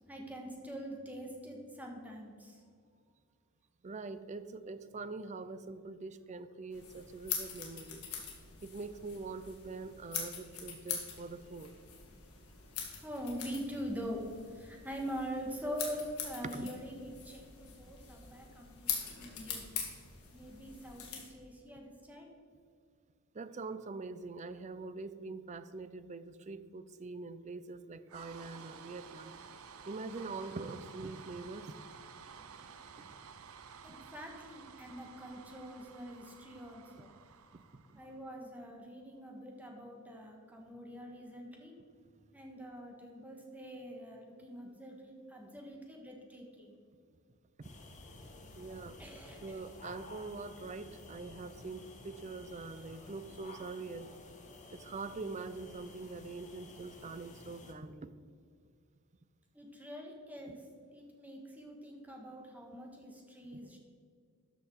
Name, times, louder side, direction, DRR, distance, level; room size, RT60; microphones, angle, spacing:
voice 1, 0.0-2.6 12.9-19.7 20.3-22.3 33.8-37.1 37.9-41.7 42.3-46.7 49.0-49.6 59.5-60.7 60.9-63.8, equal, 5° right, 0 dB, 1.5 m, -44 dB
voice 2, 3.8-8.0 8.6-11.7 16.5-16.7 23.3-29.3 29.9-31.7 33.0-33.1 37.5-38.0 47.6-47.7 48.6-49.0 49.4-54.1 54.7-58.1, right 3 dB, 30° right, 12 dB, 0.4 m, -44 dB
sound 1, 6.7-21.3, left 7 dB, 75° left, 2.0 m, -43 dB
sound 2, 28.1-38.4, right 6 dB, 70° right, 0.6 m, -53 dB
sound 3, 47.6-57.7, left 2 dB, 35° left, 1.2 m, -53 dB
13.0 x 5.5 x 4.6 m, 2.1 s
head